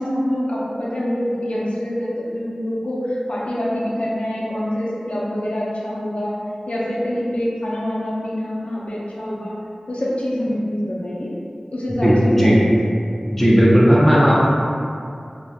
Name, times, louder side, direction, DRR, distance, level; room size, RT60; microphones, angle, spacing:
voice 1, 0.0-6.4 6.7-9.6 9.9-11.3 11.7-12.7 13.0-13.1, equal, 70° left, -6 dB, 0.5 m, -25 dB
voice 2, 12.0-12.6 13.3-14.5, equal, 10° left, -6 dB, 0.6 m, -14 dB
2.7 x 2.2 x 2.3 m, 2.4 s
wide cardioid pair, 45°, 2 cm